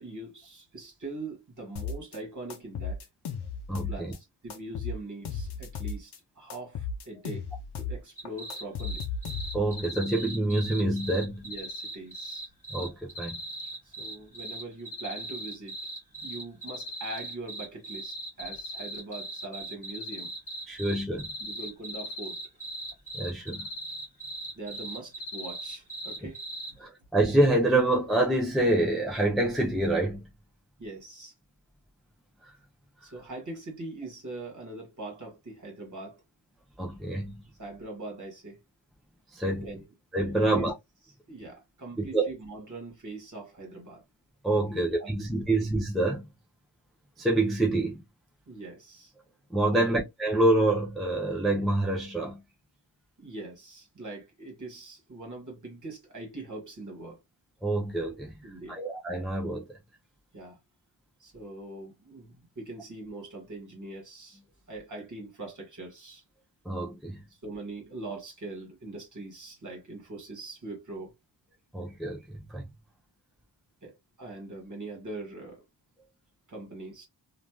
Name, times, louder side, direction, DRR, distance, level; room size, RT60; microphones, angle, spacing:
voice 1, 0.0-3.0 3.9-7.5 7.7-9.0 11.4-12.5 13.8-15.8 16.2-20.3 21.4-22.4 24.5-26.4 30.8-31.3 33.0-36.2 37.6-38.6 39.6-39.9 40.5-40.7 41.3-44.0 44.7-45.1 45.5-45.6 48.5-49.1 49.7-50.0 53.2-57.2 58.4-58.8 60.3-60.6 61.2-64.4 64.7-66.2 67.3-71.1 73.8-75.6 76.5-77.1, right 2 dB, 40° right, 1.7 m, -42 dB
sound 1, 1.8-2.2 2.5-4.2 4.5-6.2 6.5-8.0 8.3-9.8, left 5 dB, 55° left, 0.6 m, -35 dB
voice 2, 3.7-4.1 9.5-11.4 12.7-13.4 20.7-21.3 23.1-23.7 26.8-30.3 36.8-37.3 39.3-39.6 40.1-40.7 42.1-42.3 44.4-46.2 47.2-48.0 49.5-52.4 57.6-58.4 58.7-59.8 66.7-67.2 71.7-72.7, right 2 dB, ahead, 0.6 m, -26 dB
sound 2, 8.2-26.7, right 1 dB, 15° left, 1.9 m, -38 dB
3.2 x 2.5 x 2.2 m
wide cardioid pair, 165°, 47 cm